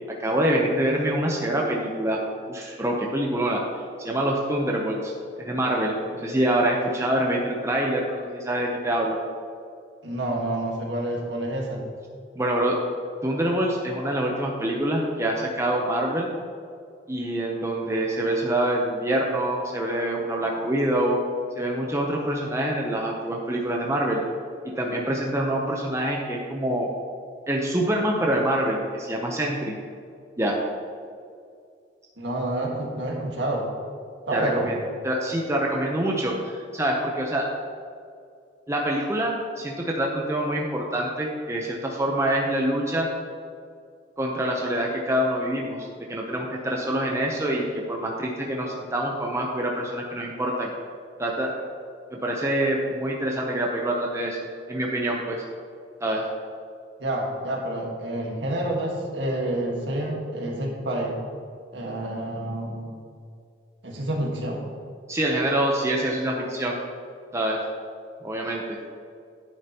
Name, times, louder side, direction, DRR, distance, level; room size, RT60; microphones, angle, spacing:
voice 1, 0.2-2.2 2.5-3.6 4.0-5.1 5.4-9.2 12.4-12.8 13.2-16.3 17.1-21.2 21.6-24.2 24.8-26.9 27.5-29.8 30.4-30.6 34.3-37.5 38.7-43.1 44.2-50.7 51.2-51.6 52.1-54.4 54.7-55.4 56.0-56.3 65.1-66.8 67.3-67.6 68.2-68.8, right 1 dB, 15° right, -1 dB, 0.8 m, -25 dB
voice 2, 10.0-11.8 32.2-33.7 34.3-34.6 57.0-61.2 61.7-62.9 63.8-64.6, right 1 dB, 75° right, -1 dB, 1.7 m, -28 dB
10.5 x 8.4 x 3.0 m, 2.3 s
head